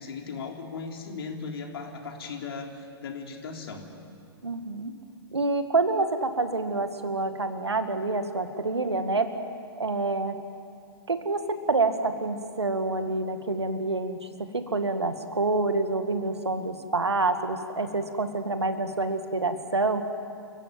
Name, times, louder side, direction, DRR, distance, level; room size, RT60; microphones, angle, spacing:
voice 1, 0.0-3.9, left 4 dB, 65° left, 2 dB, 3.5 m, -37 dB
voice 2, 4.4-4.9 5.3-9.3 9.8-10.4 11.1-20.0, right 3 dB, 85° right, 8 dB, 2.0 m, -27 dB
28.5 x 15.5 x 9.3 m, 2.5 s
figure-of-eight pair, 120°, 14 cm